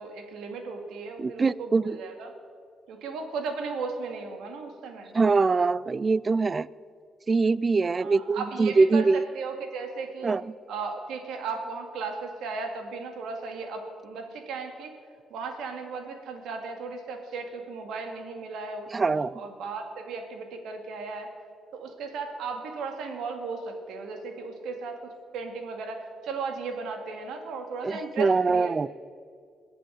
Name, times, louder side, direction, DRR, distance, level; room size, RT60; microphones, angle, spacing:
voice 1, 0.0-2.3 2.9-5.1 8.0-10.3 10.7-14.9 15.3-21.3 21.7-28.9, right 4 dB, 80° right, 5 dB, 2.0 m, -36 dB
voice 2, 1.2-2.0 5.1-6.7 7.3-9.3 10.2-10.5 18.9-19.3 27.8-28.9, right 4 dB, 30° right, 20 dB, 0.3 m, -23 dB
21.5 x 7.8 x 6.4 m, 2.1 s
cardioid pair, 90°, 0 cm